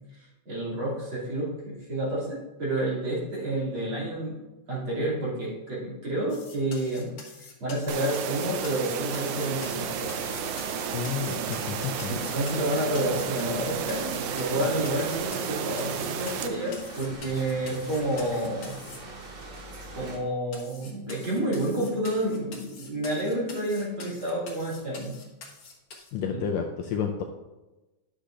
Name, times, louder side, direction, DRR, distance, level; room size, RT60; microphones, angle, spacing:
voice 1, 0.1-4.4 4.7-10.1 12.1-18.8 19.9-25.1 26.3-26.4, right 1 dB, 45° right, -6 dB, 3.2 m, -30 dB
sound 1, 6.3-13.6 13.9-19.0 19.6-19.7 20.0-20.1 20.5-26.1, left 4 dB, 50° left, 2.0 m, -46 dB
sound 2, 7.9-16.5, right 7 dB, 80° right, 1.5 m, -32 dB
sound 3, 9.4-20.2, right 2 dB, 60° right, 2.8 m, -43 dB
voice 2, 10.9-12.2 26.1-27.2, left 7 dB, 80° left, 2 dB, 1.6 m, -30 dB
11.5 x 6.6 x 2.5 m, 1.1 s
omnidirectional pair, 3.5 m